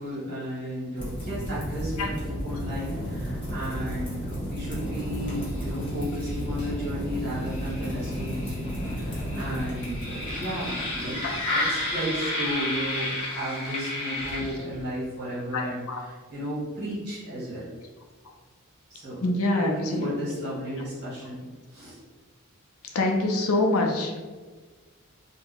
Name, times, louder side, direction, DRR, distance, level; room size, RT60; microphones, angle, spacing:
voice 1, 0.0-17.7 18.9-22.0, equal, 50° right, -7 dB, 1.5 m, -34 dB
sound 1, 1.0-14.9, left 1 dB, 25° left, 1.1 m, -31 dB
voice 2, 15.5-16.0 19.2-20.1 22.9-24.1, left 2 dB, 75° left, 2 dB, 0.5 m, -25 dB
2.6 x 2.2 x 3.9 m, 1.4 s
head